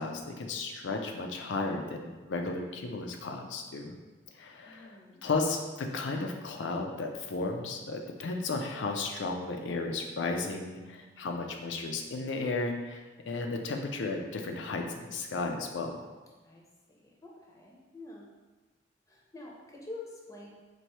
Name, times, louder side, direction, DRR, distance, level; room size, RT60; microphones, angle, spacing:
voice 1, 0.0-3.9 4.4-16.1, left 3 dB, 70° left, 3 dB, 0.5 m, -34 dB
voice 2, 4.6-5.3 16.4-18.3 19.1-20.5, left 2 dB, 15° left, -3 dB, 0.6 m, -47 dB
4.4 x 2.6 x 3.0 m, 1.3 s
head